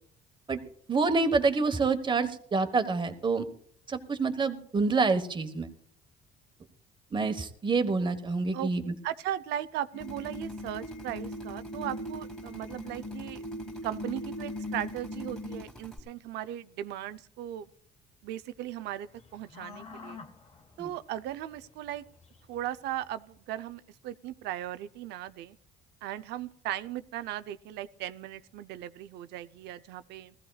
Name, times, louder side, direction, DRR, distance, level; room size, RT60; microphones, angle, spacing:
voice 1, 0.9-3.4 3.9-5.7 7.1-8.9 20.8-20.9, right 4 dB, 30° right, 9 dB, 1.3 m, -27 dB
voice 2, 9.0-13.4 13.8-17.7 18.2-20.2 20.8-22.0 22.5-25.6 26.0-30.3, right 12 dB, 85° right, 12 dB, 0.7 m, -37 dB
sound 1, 9.9-15.6, left 1 dB, 90° left, 1.3 m, -39 dB
Drill, 10.0-16.0, right 1 dB, 5° left, 2.5 m, -50 dB
sound 2, 19.1-23.1, left 5 dB, 40° left, 1.3 m, -49 dB
20.5 x 15.5 x 2.4 m, 0.64 s
cardioid pair, 110°, 17 cm